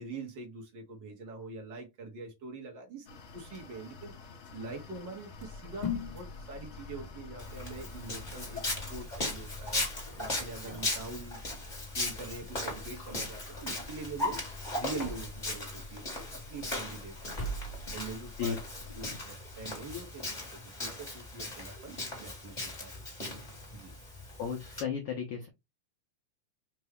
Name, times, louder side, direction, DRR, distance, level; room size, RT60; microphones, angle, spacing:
voice 1, 0.0-4.1 4.5-11.4 11.9-14.4 14.7-17.6 17.9-18.6 19.0-23.0 23.7-23.9, right 3 dB, 65° right, 1.1 m, -44 dB
sound 1, 3.1-9.1, left 4 dB, 70° left, 1.2 m, -50 dB
sound 2, 5.3-19.2, left 3 dB, 50° left, 0.5 m, -44 dB
Walk footsteps, 7.4-24.8, left 2 dB, 25° left, 1.0 m, -38 dB
voice 2, 24.4-25.5, left 7 dB, 85° left, 1.3 m, -34 dB
5.1 x 2.3 x 3.4 m
omnidirectional pair, 3.7 m